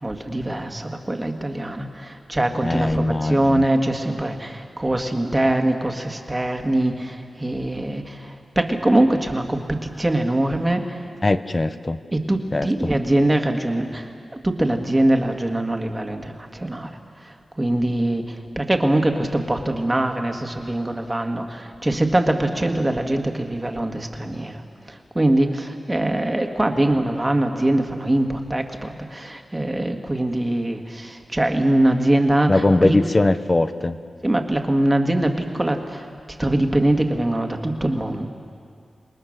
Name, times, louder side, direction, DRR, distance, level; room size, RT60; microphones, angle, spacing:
voice 1, 0.0-11.0 12.1-14.1 14.4-24.6 24.9-33.0 34.2-36.1 36.4-38.3, right 1 dB, 15° right, 4 dB, 1.7 m, -22 dB
voice 2, 2.6-3.7 11.2-12.0 12.5-12.9 32.5-34.0, left 2 dB, 25° left, 11 dB, 0.8 m, -20 dB
28.0 x 21.0 x 6.5 m, 2.2 s
wide cardioid pair, 135°, 0 cm